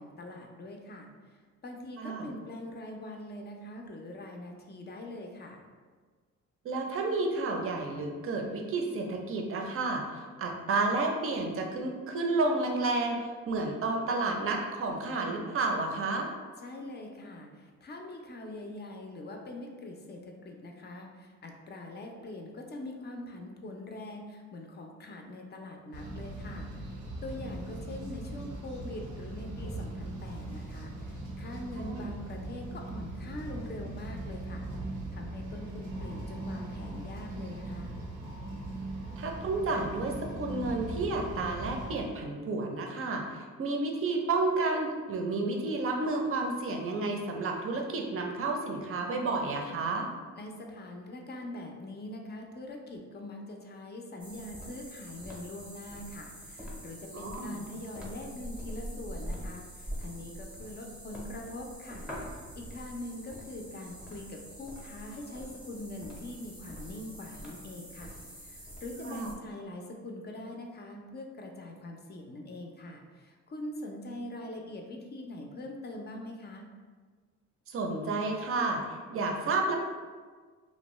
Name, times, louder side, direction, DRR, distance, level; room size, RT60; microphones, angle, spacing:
voice 1, 0.0-5.6 16.6-26.7 27.2-34.7 35.1-37.9 50.4-62.1 62.6-68.2 68.4-76.7, left 1 dB, 35° left, 2 dB, 0.4 m, -43 dB
voice 2, 2.0-2.3 6.6-13.2 13.5-16.3 31.8-32.0 39.2-50.1 57.1-57.6 69.1-69.3 77.7-78.8 79.1-79.7, right 3 dB, 45° right, 2 dB, 0.5 m, -31 dB
sound 1, 25.9-42.1, right 2 dB, 85° right, 0.6 m, -40 dB
sound 2, 54.2-69.3, equal, 5° right, 0.7 m, -44 dB
2.6 x 2.2 x 3.0 m, 1.5 s
cardioid pair, 90°, 30 cm